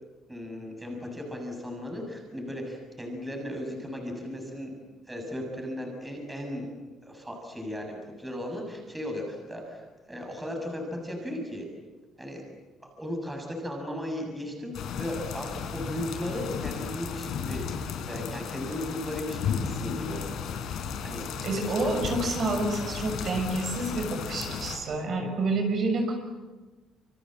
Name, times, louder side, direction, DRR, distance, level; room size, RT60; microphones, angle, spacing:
voice 1, 0.3-4.7 5.1-6.7 7.0-11.7 12.2-12.4 12.8-17.7 18.1-20.2 21.0-21.3, left 1 dB, 10° right, 2 dB, 6.6 m, -36 dB
sound 1, 14.7-24.8, left 7 dB, 70° left, 4.4 m, -34 dB
voice 2, 21.4-26.2, right 2 dB, 50° right, 4 dB, 6.7 m, -28 dB
28.5 x 26.0 x 7.7 m, 1.2 s
cardioid pair, 135°, 0 cm